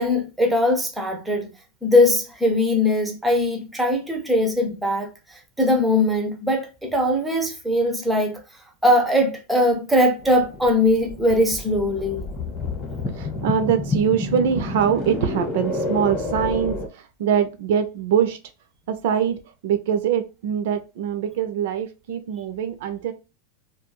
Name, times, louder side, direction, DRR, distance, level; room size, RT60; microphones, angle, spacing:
voice 1, 0.0-1.5 1.8-8.4 8.8-12.2, left 1 dB, 5° right, 0.4 m, -21 dB
sound 1, 10.2-16.9, left 2 dB, 25° left, 0.8 m, -29 dB
voice 2, 13.1-18.4 18.9-23.1, right 8 dB, 60° right, 0.4 m, -23 dB
2.3 x 2.2 x 2.9 m
supercardioid pair, 170°, 0 cm